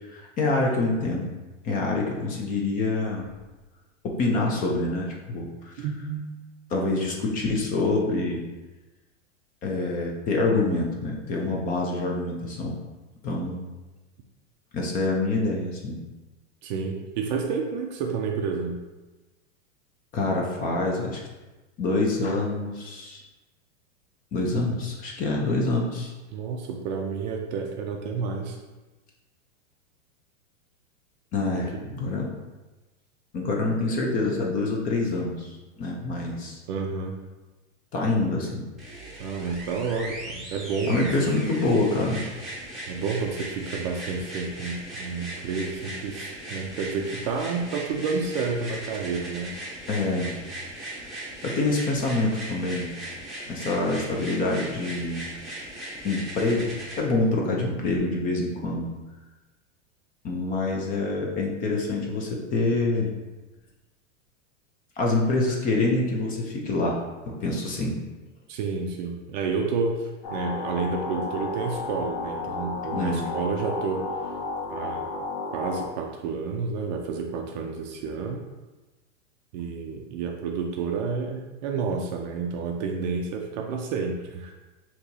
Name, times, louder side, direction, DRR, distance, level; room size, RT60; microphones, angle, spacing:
voice 1, 0.1-1.3 1.6-3.3 4.0-5.9 6.7-8.5 9.6-12.8 13.2-13.6 14.7-16.0 20.1-21.2 21.8-23.2 24.3-26.1 31.3-32.3 33.3-36.6 37.9-38.6 40.9-42.2 49.9-50.3 51.4-52.9 53.5-55.3 56.0-58.9 60.2-63.1 65.0-67.0 67.3-68.0 72.9-73.2, left 2 dB, 20° left, -1 dB, 0.5 m, -26 dB
voice 2, 5.8-6.3 16.6-18.8 26.3-28.6 31.6-31.7 36.7-37.1 39.2-41.7 42.9-49.6 68.5-70.0 70.3-74.0 74.7-75.1 75.5-78.4 79.5-84.6, right 5 dB, 40° right, 2 dB, 0.4 m, -30 dB
sound 1, 38.8-57.0 58.0-58.1, right 1 dB, ahead, 1.0 m, -38 dB
sound 2, 70.2-75.9, left 3 dB, 60° left, 1.5 m, -32 dB
6.2 x 2.9 x 2.7 m, 1.2 s
supercardioid pair, 145°, 38 cm